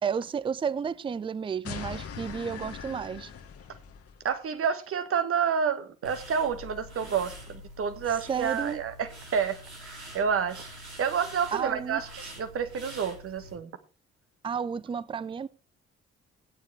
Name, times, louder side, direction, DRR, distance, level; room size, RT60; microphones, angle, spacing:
voice 1, 0.0-3.3 8.3-8.8 11.5-12.0 14.4-15.5, right 6 dB, 15° right, 0.5 m, -32 dB
sound 1, 1.6-4.2, left 7 dB, 45° left, 1.5 m, -41 dB
voice 2, 4.2-9.6 10.1-10.7 11.0-13.7, right 7 dB, 45° right, 1.4 m, -29 dB
sound 2, 6.0-13.5, equal, 85° right, 1.8 m, -46 dB
15.5 x 9.5 x 3.4 m
figure-of-eight pair, 45°, 32 cm